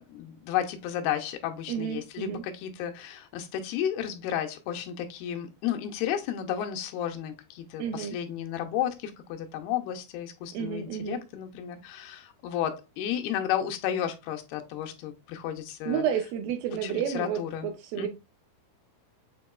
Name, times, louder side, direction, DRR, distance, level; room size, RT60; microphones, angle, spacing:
voice 1, 0.0-16.0 16.8-17.7 18.0-18.1, left 10 dB, 85° left, 2.5 m, -32 dB
voice 2, 1.7-2.4 7.8-8.2 10.5-11.2 15.9-18.1, right 8 dB, 80° right, 2.2 m, -31 dB
7.2 x 3.0 x 2.2 m
omnidirectional pair, 4.5 m